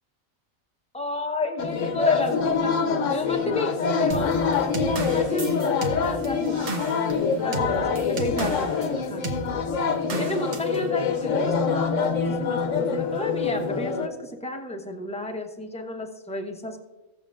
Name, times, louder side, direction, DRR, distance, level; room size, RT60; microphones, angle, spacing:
voice 1, 0.9-2.8 3.1-4.4 4.8-6.6 7.4-7.8 8.2-9.3 10.2-16.8, left 2 dB, 5° left, 2 dB, 0.7 m, -31 dB
sound 1, 1.6-14.1, left 5 dB, 65° left, 1.1 m, -25 dB
sound 2, 4.1-8.9 9.2-9.5 10.1-10.8, right 3 dB, 45° right, 1.1 m, -33 dB
17.5 x 7.1 x 2.4 m, 1.2 s
omnidirectional pair, 1.5 m